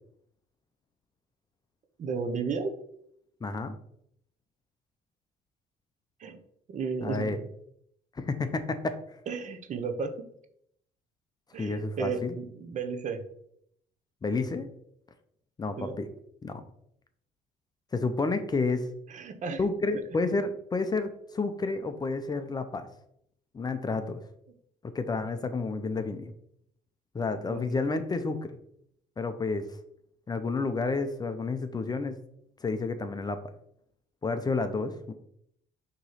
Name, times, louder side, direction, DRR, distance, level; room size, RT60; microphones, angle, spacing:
voice 1, 2.0-2.7 6.2-6.4 6.7-7.3 9.3-10.1 11.5-13.2 15.8-16.0 19.1-19.6 27.5-27.7, right 5 dB, 45° right, 7 dB, 0.9 m, -33 dB
voice 2, 3.4-3.7 7.0-7.4 8.2-9.0 11.6-12.3 14.2-14.7 15.6-16.1 16.4-16.6 17.9-18.9 19.6-22.9 23.5-24.2 24.9-26.3 27.1-28.4 29.2-29.7 30.3-32.2 32.6-33.4 34.2-35.1, left 3 dB, 25° left, 9 dB, 0.6 m, -30 dB
6.5 x 3.1 x 5.6 m, 0.72 s
cardioid pair, 110°, 17 cm